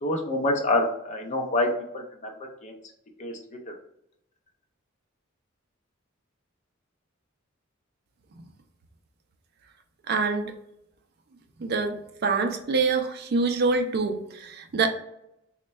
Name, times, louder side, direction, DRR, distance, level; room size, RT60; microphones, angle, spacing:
voice 1, 0.0-1.7 1.9-2.3 2.6-2.7 3.2-3.3, left 2 dB, 35° left, 3 dB, 0.5 m, -26 dB
voice 2, 10.1-10.5 11.6-12.0 12.2-14.9, right 4 dB, 50° right, 6 dB, 0.4 m, -25 dB
3.1 x 2.2 x 4.2 m, 0.79 s
head